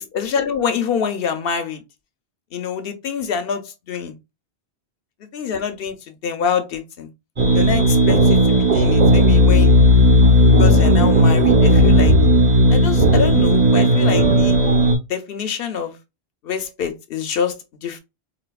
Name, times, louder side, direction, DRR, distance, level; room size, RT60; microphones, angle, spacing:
voice 1, 0.0-1.8 2.5-4.1 5.3-6.0 6.2-7.1 7.5-8.4 8.7-9.8 10.6-12.2 12.7-14.6 15.1-15.9 16.4-17.6 17.8-18.0, left 6 dB, 65° left, 0.8 m, -25 dB
sound 1, 7.4-15.0, equal, 40° right, 1.2 m, -14 dB
4.1 x 2.6 x 2.2 m
omnidirectional pair, 1.1 m